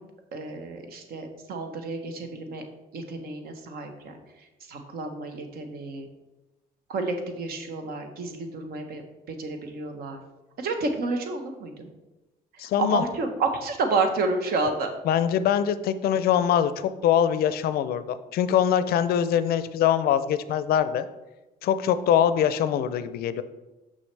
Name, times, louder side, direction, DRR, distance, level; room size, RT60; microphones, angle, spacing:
voice 1, 0.3-2.6 2.9-4.1 4.7-6.1 6.9-9.0 9.3-10.2 10.6-11.9 12.8-14.9, right 3 dB, 65° right, 6 dB, 1.0 m, -30 dB
voice 2, 12.6-13.0 15.0-21.0 21.6-23.4, left 9 dB, 65° left, 13 dB, 0.4 m, -23 dB
6.3 x 5.5 x 3.3 m, 1.1 s
cardioid pair, 110°, 17 cm